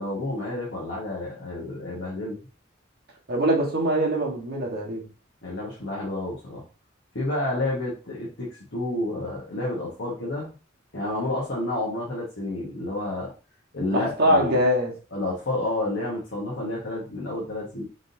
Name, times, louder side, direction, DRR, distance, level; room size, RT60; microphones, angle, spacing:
voice 1, 0.0-2.4 5.4-6.6 7.1-10.5 10.9-13.3 13.7-14.6 15.1-17.8, left 2 dB, 65° left, 1.2 m, -30 dB
voice 2, 3.3-5.0 13.9-14.9, equal, 50° right, 1.3 m, -23 dB
4.0 x 3.6 x 2.7 m
head